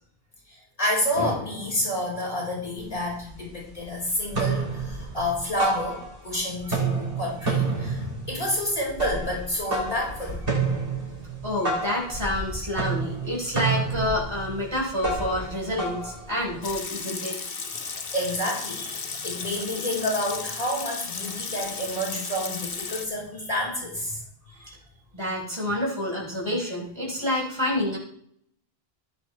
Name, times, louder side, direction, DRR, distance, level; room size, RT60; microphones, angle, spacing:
voice 1, 0.5-10.4 18.1-24.2, left 1 dB, 35° left, -4 dB, 5.4 m, -29 dB
sound 1, 2.8-2.9 3.2-3.9 4.2-6.4 6.6-16.8, right 4 dB, 60° right, 4.0 m, -30 dB
voice 2, 11.4-17.4 24.5-24.8 25.1-28.0, left 1 dB, 25° right, -4 dB, 4.9 m, -28 dB
Water tap faucet / Sink (filling or washing) / Liquid, 16.6-23.1, left 5 dB, 65° left, 1.3 m, -34 dB
15.5 x 8.7 x 3.4 m, 0.64 s
omnidirectional pair, 1.0 m